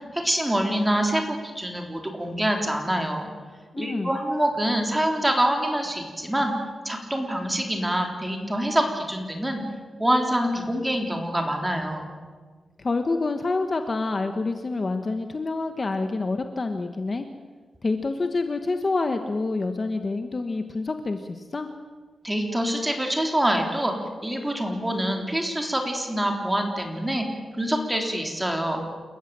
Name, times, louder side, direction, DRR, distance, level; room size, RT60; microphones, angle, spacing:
voice 1, 0.1-3.3 3.8-6.5 6.9-9.6 10.0-12.1 22.2-23.9 24.2-27.3 27.6-28.8, right 1 dB, 10° right, 2 dB, 3.5 m, -25 dB
voice 2, 3.7-4.2 12.8-17.3 17.8-21.7, left 3 dB, 30° left, 7 dB, 1.2 m, -27 dB
28.5 x 15.0 x 8.8 m, 1.5 s
wide cardioid pair, 160°, 0 cm